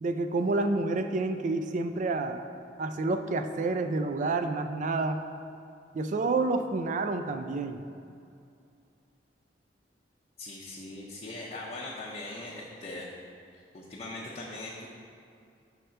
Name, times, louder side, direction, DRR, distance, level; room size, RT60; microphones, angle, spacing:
voice 1, 0.0-2.4 2.8-5.2 5.9-7.8, right 3 dB, 45° right, 8 dB, 0.3 m, -29 dB
voice 2, 10.4-13.1 13.5-14.9, left 2 dB, 35° left, -5 dB, 0.6 m, -40 dB
6.4 x 3.3 x 5.6 m, 2.5 s
head